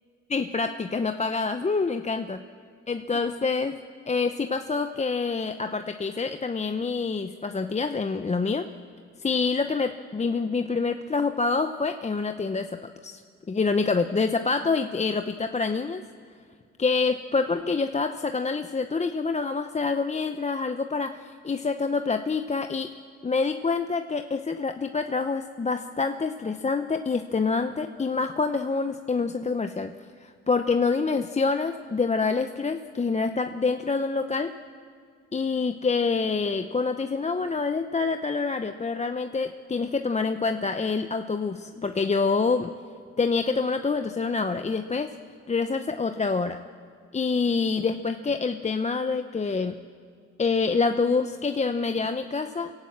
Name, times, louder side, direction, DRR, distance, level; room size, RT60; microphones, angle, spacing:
voice 1, 0.3-2.4 2.9-3.8 4.1-8.7 9.2-13.2 13.5-16.0 16.8-23.0 23.2-29.9 30.2-34.5 35.3-42.7 43.2-45.2 45.5-46.6 47.1-49.8 50.4-52.7, left 4 dB, 20° left, 8 dB, 0.7 m, -26 dB
27.5 x 17.0 x 7.6 m, 2.2 s
cardioid pair, 90°, 30 cm